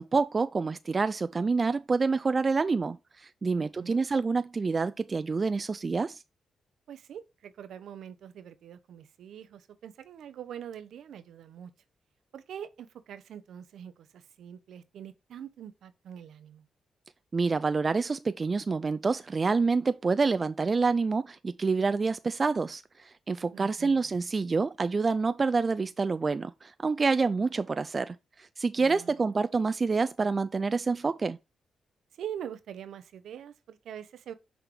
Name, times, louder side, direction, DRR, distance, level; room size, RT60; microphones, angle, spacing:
voice 1, 0.0-6.2 17.3-31.4, right 4 dB, 40° right, 0.3 m, -27 dB
voice 2, 3.5-4.0 6.9-11.7 12.3-16.6 23.5-24.1 28.8-29.4 32.1-34.3, right 9 dB, 75° right, 0.6 m, -44 dB
6.1 x 3.4 x 4.5 m
supercardioid pair, 50°, 0 cm